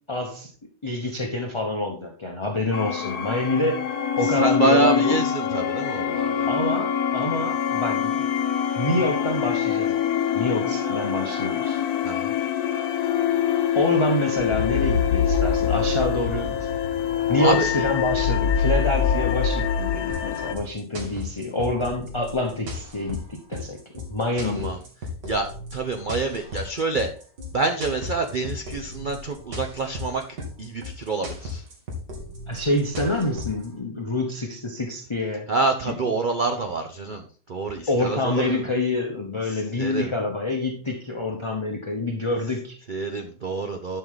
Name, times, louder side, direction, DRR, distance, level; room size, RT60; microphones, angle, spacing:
voice 1, 0.1-0.5 0.8-3.8 4.2-5.2 6.5-8.3 8.7-10.0 10.3-11.8 13.7-16.7 17.3-24.8 32.5-35.5 35.9-36.0 37.9-42.8, left 2 dB, 25° left, 2 dB, 0.8 m, -27 dB
sound 1, 2.7-20.6, left 7 dB, 65° left, 1.2 m, -24 dB
voice 2, 4.4-6.5 12.0-12.3 17.4-17.7 24.4-24.8 25.3-27.1 27.5-30.2 30.6-31.6 35.5-37.2 37.5-38.6 39.5-40.1 42.9-44.0, right 3 dB, 55° right, 5 dB, 0.5 m, -26 dB
sound 2, 20.1-33.7, left 2 dB, 75° right, 2.8 m, -36 dB
11.0 x 5.6 x 3.9 m, 0.42 s
omnidirectional pair, 1.9 m